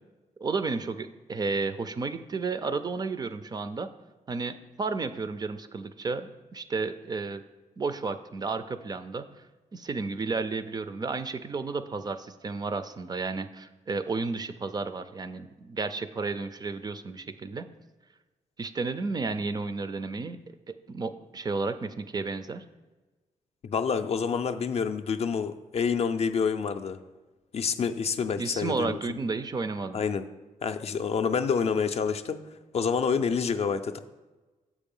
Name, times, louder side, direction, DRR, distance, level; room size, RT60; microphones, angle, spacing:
voice 1, 0.4-3.9 4.3-7.4 7.8-9.2 9.7-17.7 18.6-20.4 20.7-22.6 28.4-30.0, right 4 dB, 30° right, 11 dB, 0.3 m, -32 dB
voice 2, 23.6-27.0 27.5-29.2 29.9-30.3 30.6-32.4 32.7-34.0, left 6 dB, 50° left, 9 dB, 0.4 m, -28 dB
7.1 x 4.8 x 5.4 m, 1.2 s
wide cardioid pair, 140°, 13 cm